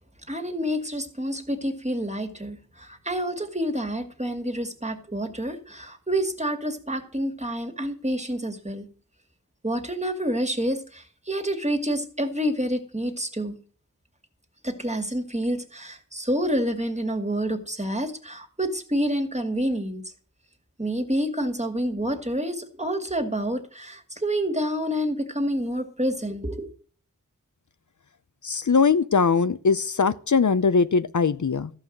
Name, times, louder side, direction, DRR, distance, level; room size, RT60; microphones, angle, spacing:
voice 1, 0.3-8.9 9.6-13.6 14.6-20.0 20.8-26.7, equal, 20° right, 2.2 m, -28 dB
voice 2, 28.4-31.7, left 5 dB, 60° left, 0.7 m, -21 dB
14.0 x 5.7 x 7.8 m
wide cardioid pair, 55°, 33 cm